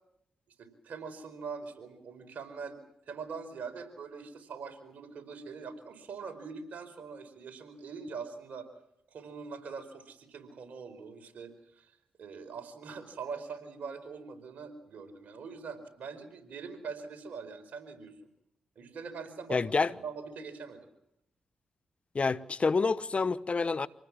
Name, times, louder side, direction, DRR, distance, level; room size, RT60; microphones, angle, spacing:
voice 1, 0.6-2.8 3.0-8.7 9.1-18.1 18.7-19.6 20.0-20.9, right 5 dB, 70° right, 4.8 m, -43 dB
voice 2, 19.5-19.9 22.1-23.9, left 4 dB, 45° left, 1.0 m, -28 dB
27.0 x 19.5 x 7.5 m
supercardioid pair, 40°, 3 cm